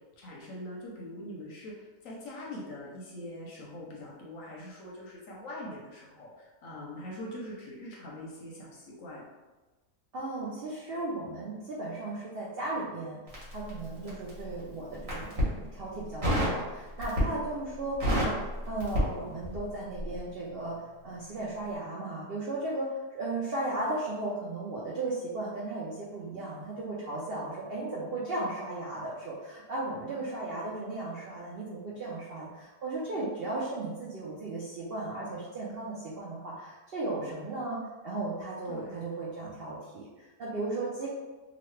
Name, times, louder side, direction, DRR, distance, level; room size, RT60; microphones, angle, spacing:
voice 1, 0.2-9.2 14.0-14.2 17.3-17.5 30.1-30.6 33.1-33.3 38.7-39.0, left 1 dB, 65° left, -3 dB, 0.9 m, -43 dB
voice 2, 10.1-13.2 13.5-20.7 21.0-41.1, right 2 dB, 75° right, -6 dB, 0.5 m, -36 dB
Crackle, 13.3-14.4 15.0-15.5 16.2-16.6 17.0-17.5 17.8-19.7 20.0-20.2, equal, 55° right, 1.4 m, -29 dB
3.0 x 2.4 x 3.1 m, 1.2 s
omnidirectional pair, 1.7 m